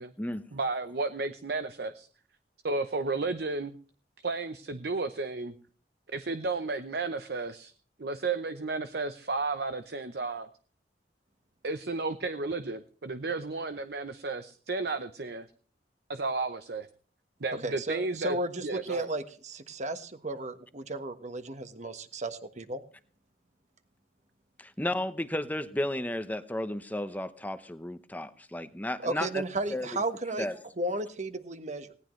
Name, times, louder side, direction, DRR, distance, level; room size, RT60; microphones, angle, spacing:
voice 1, 0.5-2.1 2.6-3.8 4.2-5.5 6.1-7.7 8.0-10.5 11.6-15.5 16.1-16.9 17.4-18.4 18.6-19.1, right 3 dB, 60° right, 10 dB, 0.8 m, -33 dB
voice 2, 17.6-22.8 29.0-30.5 30.8-31.9, right 2 dB, 40° right, 9 dB, 1.4 m, -34 dB
voice 3, 24.6-29.4 29.7-29.9 30.4-30.5, left 1 dB, 10° left, 10 dB, 0.9 m, -33 dB
19.5 x 18.0 x 3.2 m, 0.41 s
head